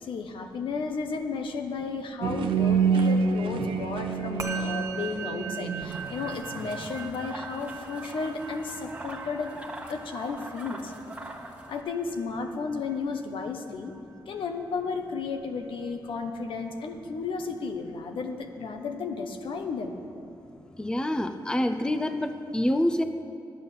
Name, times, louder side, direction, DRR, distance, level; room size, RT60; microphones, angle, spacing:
voice 1, 0.0-9.5 9.9-10.9 11.7-13.9 14.3-20.0, left 4 dB, 80° left, 5 dB, 1.0 m, -33 dB
sound 1, 2.2-7.1, right 5 dB, 85° right, 0.8 m, -27 dB
Musical instrument, 4.4-13.9, right 6 dB, 40° right, 1.1 m, -41 dB
sound 2, 5.8-11.8, right 2 dB, 15° right, 1.4 m, -42 dB
voice 2, 20.8-23.0, left 1 dB, 10° left, 8 dB, 0.6 m, -26 dB
10.5 x 8.7 x 7.0 m, 2.7 s
cardioid pair, 90°, 9 cm